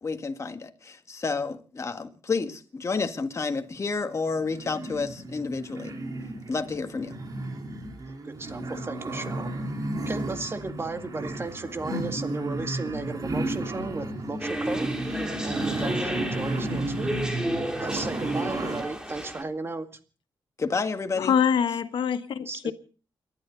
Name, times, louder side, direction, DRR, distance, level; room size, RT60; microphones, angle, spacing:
voice 1, 0.0-5.9 6.5-7.2 20.6-21.3, left 4 dB, 35° left, 1.7 m, -30 dB
sound 1, 4.2-18.8, right 1 dB, 45° right, 3.9 m, -33 dB
voice 2, 8.1-9.5 10.1-14.9 15.4-17.1 17.8-19.9 22.5-22.7, right 3 dB, 30° right, 2.0 m, -34 dB
sound 2, 14.4-19.4, right 1 dB, 10° right, 3.1 m, -32 dB
voice 3, 21.2-22.7, left 7 dB, 75° left, 1.3 m, -24 dB
29.5 x 11.5 x 4.0 m
cardioid pair, 95°, 8 cm